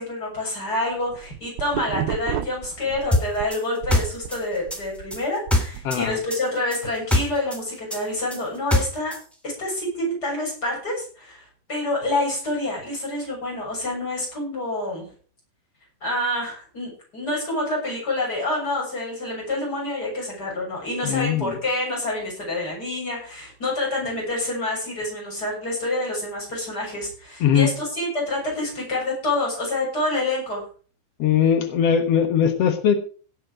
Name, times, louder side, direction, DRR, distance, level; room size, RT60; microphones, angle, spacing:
voice 1, 0.0-9.2 9.4-15.1 16.0-30.7, left 2 dB, 20° left, -3 dB, 7.5 m, -27 dB
sound 1, 1.0-3.5 3.8-6.2, right 13 dB, 75° right, 2.4 m, -32 dB
sound 2, 3.1-6.0 6.3-9.2, left 1 dB, ahead, 2.3 m, -23 dB
voice 2, 5.8-6.2 21.0-21.6 27.4-27.7 31.2-32.9, left 8 dB, 75° left, 7 dB, 1.4 m, -20 dB
17.5 x 7.5 x 5.1 m, 0.40 s
omnidirectional pair, 4.8 m